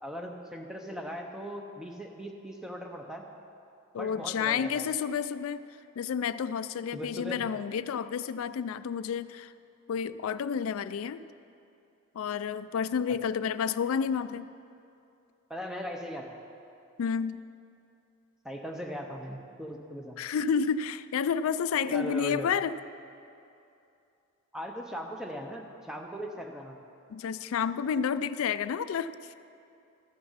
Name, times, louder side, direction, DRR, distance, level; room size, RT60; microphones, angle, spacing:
voice 1, 0.0-3.3 4.0-4.9 6.9-7.5 13.1-13.3 15.5-16.4 18.4-20.2 21.8-22.5 24.5-26.8, equal, ahead, 2 dB, 0.7 m, -39 dB
voice 2, 3.9-5.6 6.0-9.5 9.9-11.2 12.1-14.5 17.0-17.4 20.2-22.8 27.1-29.3, left 7 dB, 75° left, 14 dB, 0.3 m, -30 dB
13.5 x 6.7 x 5.6 m, 2.7 s
head